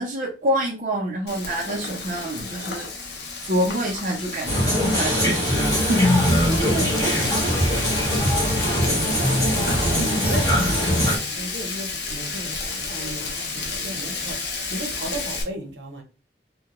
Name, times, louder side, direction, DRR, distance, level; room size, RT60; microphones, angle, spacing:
voice 1, 0.0-2.9 3.5-5.3 5.8-6.0, equal, 45° right, 0.6 m, -26 dB
Frying (food), 1.3-15.4, left 4 dB, 70° left, 0.6 m, -31 dB
sound 1, 4.5-11.2, equal, 20° left, 1.0 m, -21 dB
voice 2, 6.5-9.8 10.2-16.0, right 1 dB, 85° right, 0.8 m, -35 dB
2.2 x 2.2 x 2.9 m
head